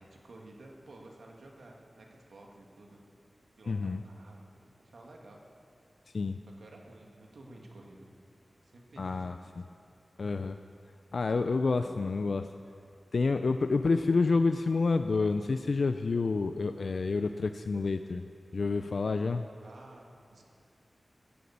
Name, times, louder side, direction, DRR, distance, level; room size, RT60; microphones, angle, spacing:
voice 1, 0.0-3.0 3.6-5.4 6.6-8.1 8.6-9.8 19.6-20.4, right 2 dB, 85° right, 0 dB, 1.9 m, -53 dB
voice 2, 3.7-4.0 6.1-6.4 9.0-9.4 10.2-10.6 11.1-12.5 13.1-18.2 18.5-19.5, left 4 dB, 70° left, 8 dB, 0.4 m, -28 dB
13.0 x 9.3 x 8.6 m, 2.5 s
wide cardioid pair, 65°, 0 cm